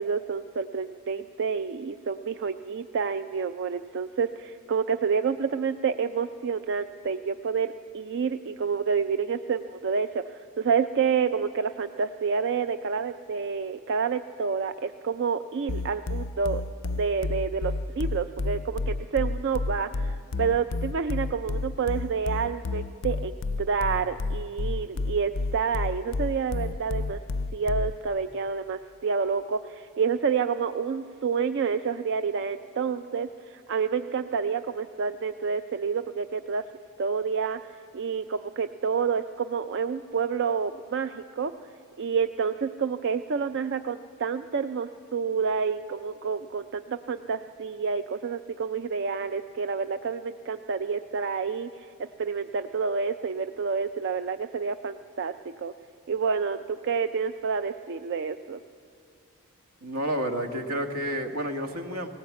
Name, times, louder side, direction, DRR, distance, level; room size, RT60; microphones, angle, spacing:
voice 1, 0.0-16.6 16.9-27.2 27.5-36.7 37.0-55.7 56.1-58.6, right 5 dB, 55° right, 10 dB, 0.4 m, -29 dB
sound 1, 15.7-28.1, left 3 dB, 60° left, 0.4 m, -30 dB
voice 2, 59.8-62.1, equal, 80° right, 4 dB, 1.8 m, -30 dB
18.5 x 18.0 x 8.5 m, 2.3 s
head